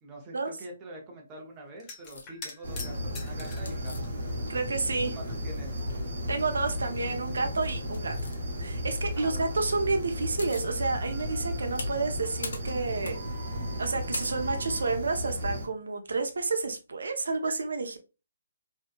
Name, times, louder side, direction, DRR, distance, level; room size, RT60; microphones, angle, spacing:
voice 1, 0.0-4.1 5.2-5.7 9.1-9.4, right 1 dB, 20° right, 0.7 m, -45 dB
sound 1, 1.8-3.8 4.6-5.4 5.7-5.8 7.1-7.2 7.6-8.6 12.2-12.4 12.7-12.9, left 3 dB, 20° left, 0.5 m, -45 dB
sound 2, 2.0-2.3 3.7-4.8 5.0-6.0 6.5-6.9 7.6-8.4 9.9-10.0 10.1-10.7 11.2-14.9, left 2 dB, 75° left, 0.7 m, -43 dB
sound 3, 2.6-15.7, equal, 55° right, 1.0 m, -34 dB
voice 2, 4.5-5.1 6.3-8.2 8.6-13.2 13.8-18.0, right 3 dB, 85° right, 0.4 m, -30 dB
2.7 x 2.2 x 2.4 m
hypercardioid pair, 165°, 0 cm